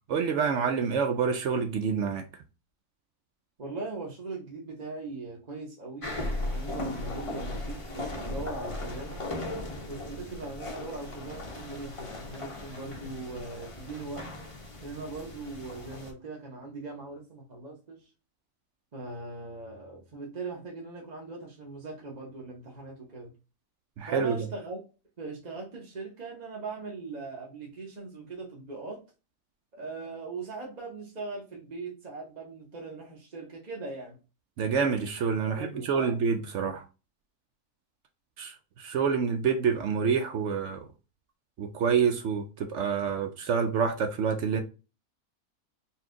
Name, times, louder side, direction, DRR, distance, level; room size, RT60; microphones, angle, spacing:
voice 1, 0.1-2.3 24.0-24.5 34.6-36.8 38.4-40.9 41.6-44.6, right 6 dB, 70° right, 0.7 m, -27 dB
voice 2, 3.6-6.1 6.3-9.2 9.8-14.3 14.8-18.1 18.9-23.3 24.1-24.8 25.2-29.0 29.7-34.2 35.4-36.2, right 3 dB, 35° right, 0.8 m, -40 dB
sound 1, 6.0-16.1, left 1 dB, 35° left, 0.5 m, -37 dB
4.3 x 2.3 x 3.6 m
omnidirectional pair, 1.6 m